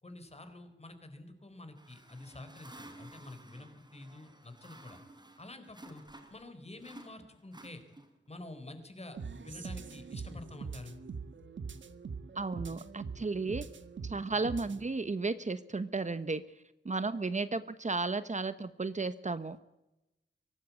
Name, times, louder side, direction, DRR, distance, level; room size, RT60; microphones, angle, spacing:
voice 1, 0.0-5.0 5.4-6.0 6.3-7.8 8.3-9.2 9.4-10.9, left 2 dB, 35° left, 8 dB, 4.2 m, -48 dB
sound 1, 1.7-6.5 6.8-8.3, right 1 dB, 20° right, 4.5 m, -54 dB
sound 2, 9.1-14.9, right 5 dB, 75° right, 1.6 m, -43 dB
voice 2, 12.3-13.6 14.0-16.4 16.8-19.6, right 3 dB, 40° right, 12 dB, 1.1 m, -34 dB
24.0 x 18.0 x 8.5 m, 0.94 s
wide cardioid pair, 90°, 19 cm